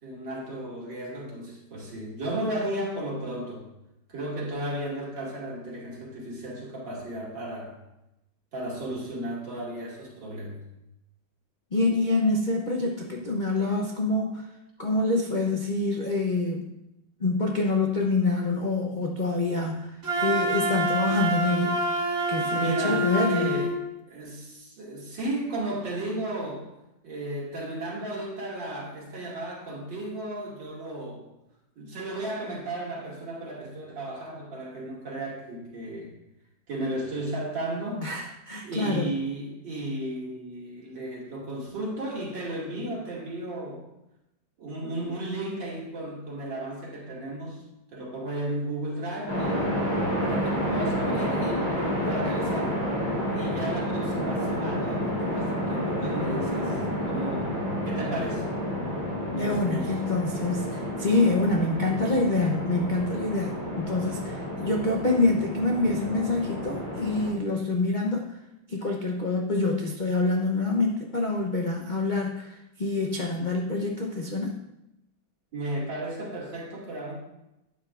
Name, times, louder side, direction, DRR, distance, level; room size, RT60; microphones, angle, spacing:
voice 1, 0.0-3.7 4.1-7.7 8.5-10.6 22.5-23.7 24.1-26.7 27.0-31.3 31.8-36.2 36.7-38.1 38.6-43.8 44.6-47.6 47.9-52.8 53.3-57.6 57.8-58.4 59.3-60.1 75.5-77.1, right 1 dB, 65° right, -4 dB, 3.0 m, -34 dB
voice 2, 11.7-14.5 14.8-16.7 17.2-21.8 22.3-23.5 38.0-39.1 59.3-68.3 68.7-74.6, left 2 dB, 75° left, -1 dB, 0.4 m, -26 dB
Wind instrument woodwind instrument, 20.0-23.7, right 1 dB, 35° right, 1.3 m, -26 dB
sound 1, 49.3-67.3, equal, 55° left, 4.5 m, -30 dB
12.0 x 8.8 x 2.5 m, 0.89 s
omnidirectional pair, 2.2 m